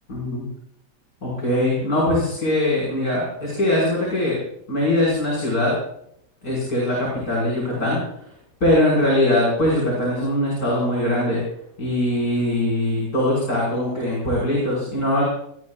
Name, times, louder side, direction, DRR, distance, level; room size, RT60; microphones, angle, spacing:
voice 1, 0.1-0.4 1.2-4.4 4.7-5.7 6.4-8.0 8.6-11.4 11.8-15.2, left 1 dB, 60° left, -5 dB, 6.2 m, -21 dB
23.5 x 19.5 x 2.5 m, 0.72 s
omnidirectional pair, 1.8 m